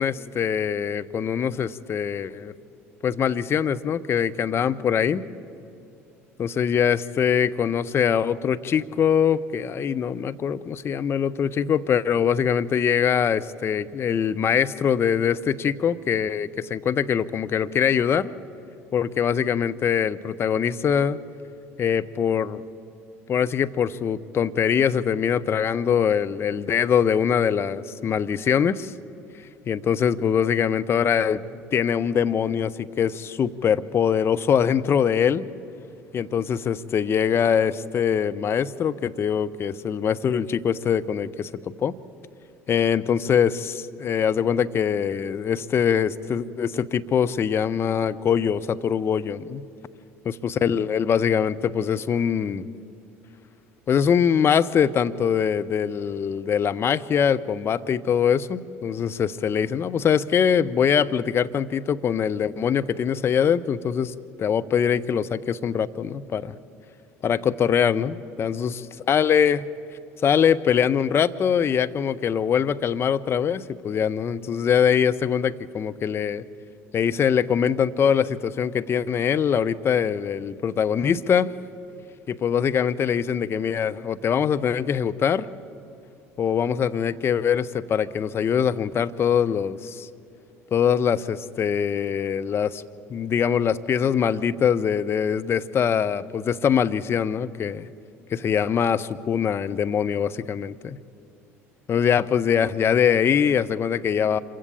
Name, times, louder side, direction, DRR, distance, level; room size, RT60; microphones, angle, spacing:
voice 1, 0.0-2.5 3.0-5.2 6.4-18.3 18.9-21.2 21.8-22.6 23.3-28.9 29.7-35.5 36.1-41.9 42.7-49.6 50.2-52.7 53.9-66.5 67.2-68.8 69.1-69.7 70.2-76.4 76.9-81.5 82.3-85.5 86.4-90.1 90.7-92.8 93.1-97.9 98.3-101.0 101.9-104.4, left 7 dB, 35° left, 11 dB, 0.7 m, -23 dB
26.0 x 15.5 x 8.5 m, 2.6 s
figure-of-eight pair, 60°, 8 cm